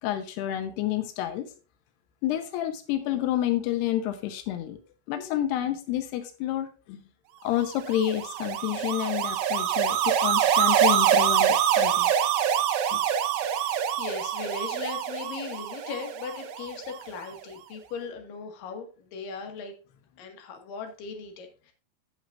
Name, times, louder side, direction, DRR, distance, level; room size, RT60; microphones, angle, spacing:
voice 1, 0.0-1.5 2.2-4.8 5.1-7.0 7.4-12.1 12.9-13.0, left 12 dB, 90° left, 8 dB, 2.3 m, -29 dB
sound 1, 7.7-17.0, right 9 dB, 75° right, 3.2 m, -25 dB
voice 2, 13.1-19.7 20.2-21.7, left 5 dB, 60° left, 4 dB, 2.7 m, -39 dB
15.5 x 6.6 x 2.5 m, 0.34 s
omnidirectional pair, 5.9 m